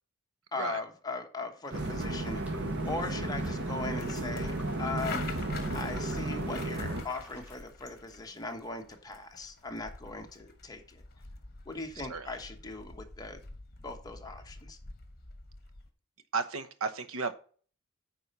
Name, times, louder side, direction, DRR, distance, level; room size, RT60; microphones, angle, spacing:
voice 1, 0.5-11.0 11.7-13.4 13.8-14.8, left 3 dB, 20° left, 1.2 m, -39 dB
sound 1, 1.6-7.5, equal, 5° right, 2.6 m, -53 dB
sound 2, 1.7-7.0, right 2 dB, 55° right, 1.3 m, -33 dB
sound 3, 3.6-15.9, left 3 dB, 50° left, 1.2 m, -46 dB
voice 2, 16.3-17.3, right 4 dB, 75° right, 1.0 m, -34 dB
9.3 x 4.3 x 5.4 m
head